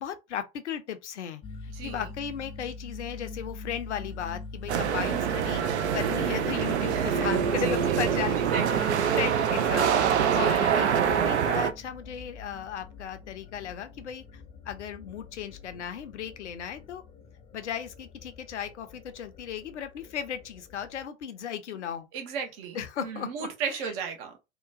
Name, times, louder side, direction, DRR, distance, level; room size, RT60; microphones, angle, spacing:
voice 1, 0.0-5.6 5.9-17.0 17.5-22.1 22.7-23.9, left 8 dB, 75° left, 0.6 m, -36 dB
sound 1, 1.4-21.1, left 4 dB, 15° left, 0.4 m, -44 dB
sound 2, 4.7-11.7, right 8 dB, 70° right, 0.5 m, -25 dB
voice 2, 6.9-8.0 8.3-9.0 10.2-10.7 22.1-24.4, right 6 dB, 50° right, 0.9 m, -36 dB
2.8 x 2.2 x 2.5 m
figure-of-eight pair, 80°, 35 cm